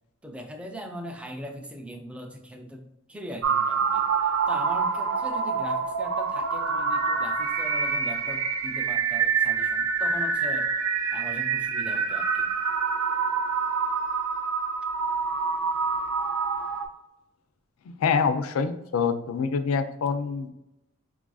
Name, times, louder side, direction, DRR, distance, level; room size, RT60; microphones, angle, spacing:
voice 1, 0.2-4.1 4.5-10.7 11.1-12.5, equal, 5° right, 4 dB, 0.3 m, -40 dB
sound 1, 3.4-16.9, right 5 dB, 75° right, 0.5 m, -26 dB
voice 2, 17.9-20.5, left 5 dB, 70° left, 10 dB, 0.3 m, -26 dB
4.7 x 2.4 x 2.3 m, 0.88 s
head